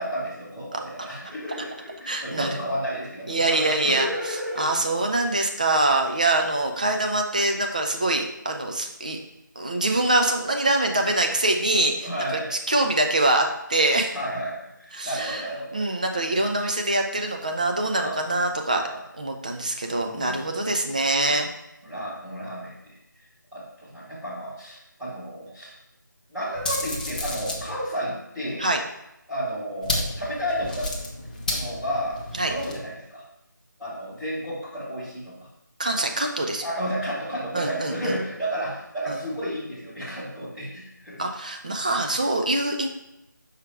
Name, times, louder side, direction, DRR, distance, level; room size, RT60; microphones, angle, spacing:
voice 1, 0.0-4.7 12.0-12.5 14.1-15.8 16.3-16.5 17.9-18.2 18.8-19.0 19.9-20.4 21.2-21.4 21.8-23.0 23.5-25.7 26.3-28.7 29.3-30.9 31.5-32.2 32.4-33.2 33.8-35.4 36.6-41.2, equal, 5° right, -13 dB, 1.2 m, -32 dB
voice 2, 2.1-2.5 3.3-4.1 4.6-9.2 9.6-12.1 12.5-14.2 14.9-15.5 15.7-18.8 19.2-21.5 28.6-28.8 32.4-32.5 35.8-36.6 37.5-38.2 39.1-39.2 41.2-42.9, right 2 dB, 25° right, 3 dB, 0.4 m, -24 dB
sound 1, 26.5-27.7 29.8-32.8, left 2 dB, 25° left, 0.6 m, -31 dB
6.0 x 4.8 x 3.3 m, 0.88 s
figure-of-eight pair, 165°, 11 cm